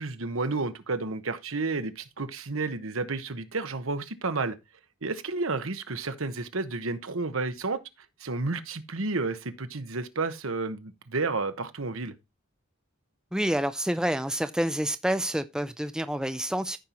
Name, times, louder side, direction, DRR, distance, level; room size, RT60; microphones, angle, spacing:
voice 1, 0.0-4.6 5.0-7.8 8.2-12.1, right 3 dB, 70° right, 1.1 m, -31 dB
voice 2, 13.3-16.8, right 1 dB, 5° right, 0.5 m, -28 dB
14.0 x 5.5 x 3.0 m
head